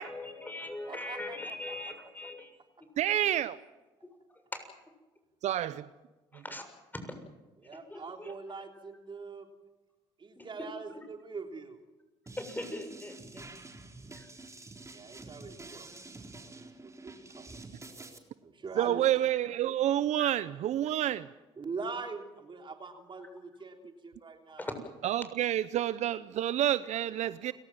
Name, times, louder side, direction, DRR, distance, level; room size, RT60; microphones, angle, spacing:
voice 1, 0.0-2.5 2.8-2.9 4.5-4.7 6.3-6.6 7.0-7.1 7.7-8.3 10.4-11.0 12.4-13.5 14.2-14.3 20.2-20.3 24.6-25.0, left 2 dB, 15° left, 7 dB, 6.9 m, -41 dB
voice 2, 0.6-1.8 7.6-9.5 10.2-11.8 14.9-15.9 16.4-17.6 18.4-19.0 21.6-24.7, right 4 dB, 40° right, 4 dB, 3.4 m, -43 dB
voice 3, 3.0-3.6 5.4-5.7 18.8-21.3 25.0-27.5, right 12 dB, 65° right, 16 dB, 0.7 m, -28 dB
sound 1, 12.3-18.2, right 3 dB, 25° right, 3.8 m, -48 dB
29.5 x 18.5 x 7.5 m, 1.1 s
supercardioid pair, 60°, 13 cm